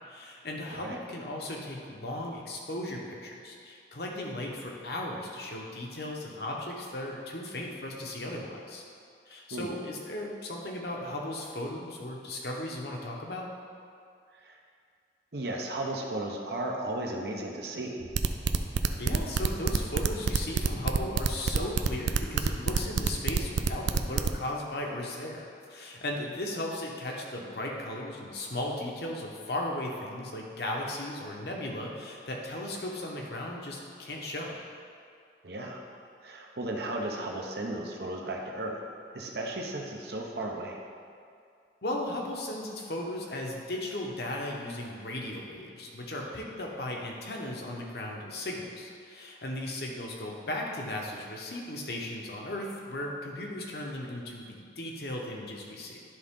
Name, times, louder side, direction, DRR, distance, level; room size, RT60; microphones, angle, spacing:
voice 1, 0.1-8.8 9.3-13.5 19.0-34.6 41.8-56.0, left 1 dB, 60° left, -1 dB, 1.0 m, -36 dB
voice 2, 15.3-18.1 35.4-35.8 36.2-38.8 39.1-40.8, right 1 dB, 65° right, 0 dB, 0.9 m, -35 dB
sound 1, 18.0-24.3, right 5 dB, 90° right, 0.4 m, -26 dB
11.5 x 3.8 x 3.7 m, 2.3 s
head